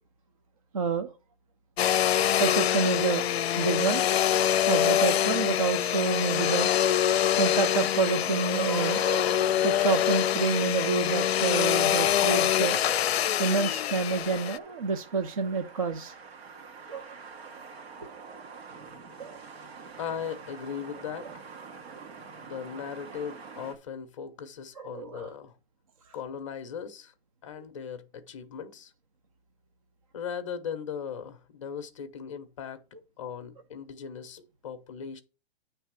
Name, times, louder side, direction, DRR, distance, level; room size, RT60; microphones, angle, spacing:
voice 1, 0.7-1.1 2.4-3.3 3.6-4.0 4.7-6.7 7.4-16.1 16.9-17.2 19.2-19.4 24.8-25.3, right 4 dB, 35° right, 0.4 m, -28 dB
Domestic sounds home sounds, 1.8-14.6, left 11 dB, 70° left, 0.5 m, -25 dB
sound 1, 6.6-23.7, right 5 dB, 75° right, 1.6 m, -48 dB
voice 2, 20.0-21.5 22.4-25.6 26.1-27.1 27.4-28.9 30.1-32.8 33.2-35.2, left 7 dB, 30° left, 0.7 m, -38 dB
9.2 x 3.3 x 6.0 m
hypercardioid pair, 175°, 32 cm